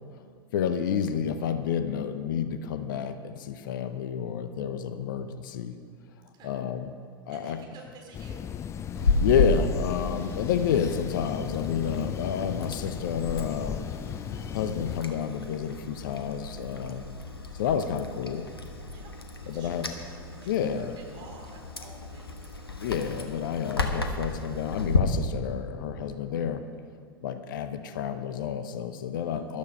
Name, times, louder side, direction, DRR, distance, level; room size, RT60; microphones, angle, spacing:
voice 1, 0.5-5.8 6.4-7.0 7.3-7.6 8.9-13.9 14.5-17.1 17.5-18.5 19.5-19.9 20.4-21.0 22.8-26.6 27.2-29.6, left 8 dB, 60° left, 10 dB, 0.7 m, -30 dB
voice 2, 7.3-8.4 18.9-19.1 19.4-22.5 29.2-29.6, right 4 dB, 35° right, 0 dB, 3.3 m, -51 dB
sound 1, 8.1-15.0, left 8 dB, 25° left, 0.4 m, -36 dB
Chewing mastication, 9.0-25.0, left 3 dB, 85° left, 1.1 m, -33 dB
13.5 x 12.0 x 5.2 m, 2.2 s
figure-of-eight pair, 85°, 12 cm